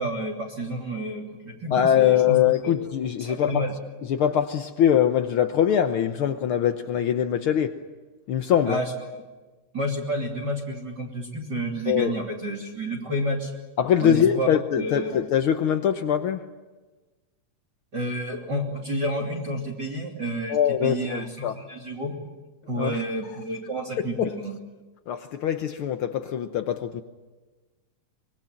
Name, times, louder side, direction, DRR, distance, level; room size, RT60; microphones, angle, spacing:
voice 1, 0.0-2.4 2.6-2.7 3.2-3.7 8.6-8.9 9.7-13.5 14.0-14.5 14.7-15.1 17.9-22.2 22.7-24.5, right 1 dB, 35° right, 3.3 m, -30 dB
voice 2, 1.7-3.7 4.1-7.8 8.3-8.8 11.9-12.1 13.8-16.5 20.5-21.6 22.7-23.0 24.0-24.4 25.1-27.0, left 9 dB, 85° left, 1.1 m, -23 dB
24.5 x 21.5 x 8.9 m
omnidirectional pair, 3.7 m